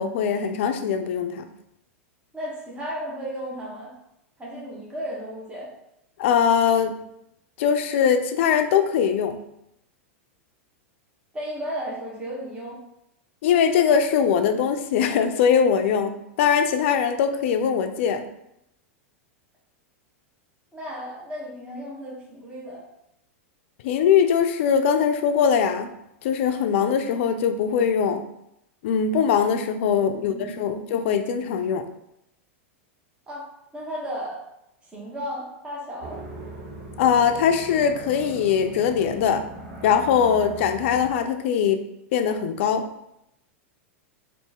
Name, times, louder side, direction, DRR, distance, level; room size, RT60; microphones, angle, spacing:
voice 1, 0.0-1.5 6.2-7.0 7.6-9.4 13.4-18.2 23.8-25.9 26.2-28.3 28.8-31.9 37.0-39.4 39.8-41.8 42.1-42.9, left 7 dB, 65° left, 8 dB, 0.5 m, -21 dB
voice 2, 2.3-3.9 4.4-5.7 11.3-12.8 20.7-22.8 29.9-30.8 33.3-34.4 34.9-36.2, equal, 15° right, -5 dB, 1.3 m, -34 dB
sound 1, 36.0-41.1, right 2 dB, 60° right, 1.2 m, -40 dB
4.1 x 2.7 x 3.6 m, 0.82 s
hypercardioid pair, 110°, 7 cm